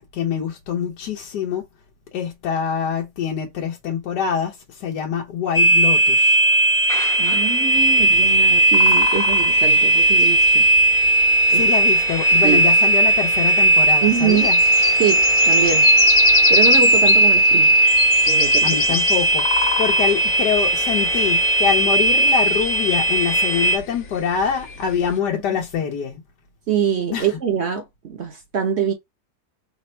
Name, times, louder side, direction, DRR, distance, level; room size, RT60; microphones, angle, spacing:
voice 1, 0.0-1.7 2.1-6.4 11.5-14.6 18.6-26.2 27.1-27.3, left 7 dB, 80° left, 1.4 m, -25 dB
sound 1, 5.5-23.8, right 1 dB, 5° left, 0.3 m, -16 dB
voice 2, 7.2-10.7 11.5-11.7 12.4-12.6 14.0-14.5 15.0-15.9 16.5-17.8 18.3-19.0 26.7-28.9, right 7 dB, 55° right, 0.8 m, -24 dB
sound 2, 7.7-25.2, left 6 dB, 55° left, 1.0 m, -29 dB
3.4 x 2.1 x 4.2 m
omnidirectional pair, 1.8 m